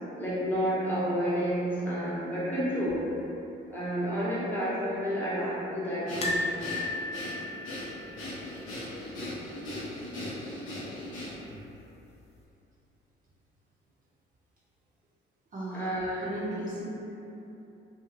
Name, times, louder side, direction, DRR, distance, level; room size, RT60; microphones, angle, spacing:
voice 1, 0.2-3.0 3.7-6.4 15.7-16.7, equal, 10° left, -10 dB, 0.9 m, -30 dB
Breathing, 6.1-11.6, left 1 dB, 90° left, 0.7 m, -38 dB
sound 1, 6.2-9.3 9.5-9.7 10.0-10.1 11.3-11.8 12.4-12.5, left 2 dB, 35° left, 0.5 m, -35 dB
voice 2, 15.5-16.9, right 1 dB, 45° right, -7 dB, 0.6 m, -36 dB
2.6 x 2.4 x 2.9 m, 2.9 s
cardioid pair, 90°, 20 cm